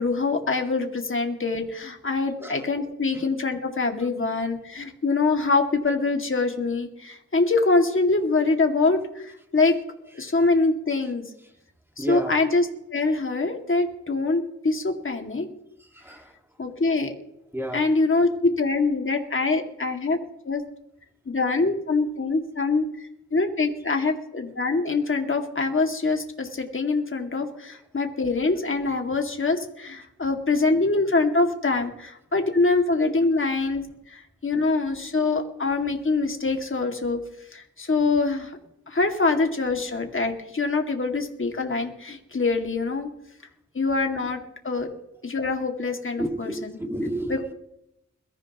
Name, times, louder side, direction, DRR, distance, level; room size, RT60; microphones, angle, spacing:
voice 1, 0.0-9.7 10.1-11.2 12.0-12.7 12.9-15.5 16.6-17.1 17.7-20.2 20.5-20.6 21.3-37.2 37.5-38.6 38.9-43.1 43.7-44.4 44.6-44.9 45.2-46.7 47.3-47.4, left 3 dB, 40° left, 3 dB, 2.3 m, -24 dB
voice 2, 12.0-12.3 15.8-16.4 17.5-17.8 44.7-44.8 46.2-47.5, right 1 dB, 5° right, 4 dB, 1.9 m, -32 dB
22.0 x 14.5 x 3.0 m, 0.79 s
wide cardioid pair, 105°, 31 cm